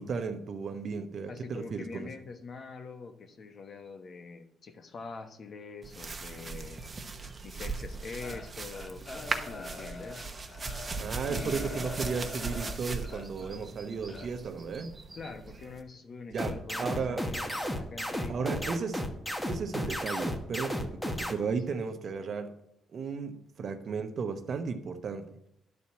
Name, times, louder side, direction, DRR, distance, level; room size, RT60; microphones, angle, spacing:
voice 1, 0.0-2.1 10.9-14.9 16.3-17.3 18.3-19.0 19.5-22.6 22.9-25.3, right 5 dB, 55° right, 8 dB, 1.0 m, -35 dB
voice 2, 1.3-6.8 7.4-10.3 11.3-11.9 15.2-18.8 21.7-21.8, left 4 dB, 50° left, 7 dB, 1.2 m, -44 dB
sound 1, 5.8-15.8, right 3 dB, 30° right, 1.0 m, -39 dB
sound 2, 8.2-13.6 14.1-14.3, left 3 dB, 35° left, 1.6 m, -44 dB
sound 3, 16.4-21.3, equal, 5° left, 1.2 m, -33 dB
11.0 x 4.2 x 7.1 m, 0.78 s
cardioid pair, 90°, 0 cm